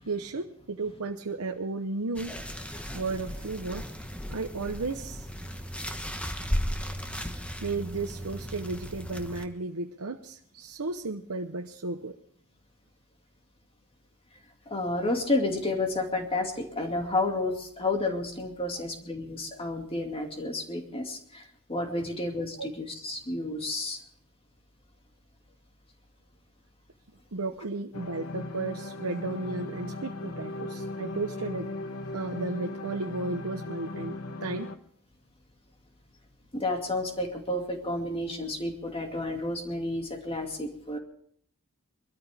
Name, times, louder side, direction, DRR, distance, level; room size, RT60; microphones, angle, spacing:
voice 1, 0.1-2.3 2.9-3.9 4.3-5.3 7.6-12.2 22.6-22.7 27.3-31.7 32.1-34.7, right 3 dB, 75° right, 3 dB, 0.9 m, -34 dB
sound 1, 2.2-9.4, equal, 5° left, 1.1 m, -35 dB
voice 2, 14.7-21.4 21.7-24.0 36.5-41.0, left 2 dB, 25° left, 3 dB, 2.4 m, -31 dB
sound 2, 27.9-34.8, left 2 dB, 90° left, 1.2 m, -38 dB
23.0 x 13.5 x 3.5 m, 0.63 s
head